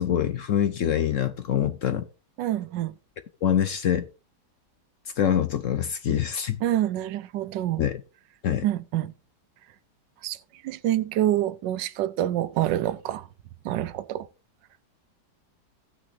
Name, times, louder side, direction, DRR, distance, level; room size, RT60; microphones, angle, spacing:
voice 1, 0.0-2.1 3.4-4.1 5.2-6.6 7.8-8.0 8.4-8.6, left 9 dB, 60° left, 0.9 m, -25 dB
voice 2, 2.4-2.9 6.6-7.9 8.6-9.1 10.2-10.4 10.6-13.3 13.6-14.3, right 13 dB, 85° right, 1.3 m, -26 dB
16.0 x 6.3 x 2.8 m
omnidirectional pair, 1.9 m